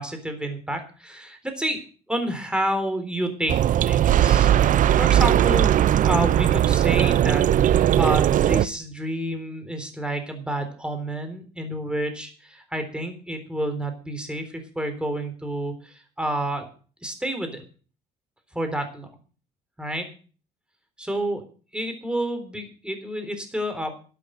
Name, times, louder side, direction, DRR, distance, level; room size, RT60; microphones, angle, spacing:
voice 1, 0.0-1.8 2.1-4.5 5.0-5.7 6.0-16.7 17.0-17.6 18.5-19.1 19.8-20.1 21.0-21.4 21.7-23.9, right 1 dB, 5° right, 7 dB, 3.8 m, -29 dB
sound 1, 3.5-8.7, right 11 dB, 50° right, 0.6 m, -18 dB
12.0 x 8.4 x 7.8 m, 0.40 s
cardioid pair, 110°, 17 cm